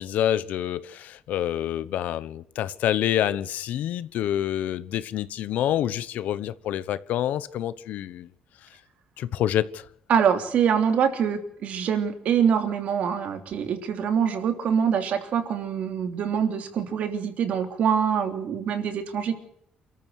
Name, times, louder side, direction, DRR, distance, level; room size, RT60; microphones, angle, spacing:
voice 1, 0.0-8.3 8.6-8.7 9.2-9.9, left 11 dB, 75° left, 1.1 m, -27 dB
voice 2, 10.1-19.4, right 7 dB, 55° right, 3.2 m, -24 dB
28.5 x 14.0 x 6.6 m
cardioid pair, 160°, 3 cm